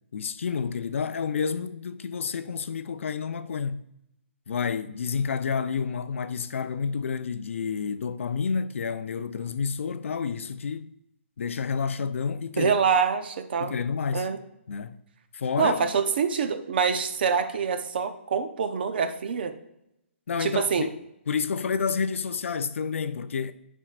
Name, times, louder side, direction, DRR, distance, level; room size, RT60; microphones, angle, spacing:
voice 1, 0.1-3.8 4.5-10.9 11.4-12.7 13.6-14.3 14.7-15.0 15.3-15.9 20.3-23.5, left 6 dB, 75° left, 0.5 m, -29 dB
voice 2, 12.6-13.7 14.1-14.4 15.6-19.5 20.4-20.9, right 6 dB, 50° right, 0.7 m, -25 dB
10.0 x 4.5 x 2.5 m
hypercardioid pair, 165°, 7 cm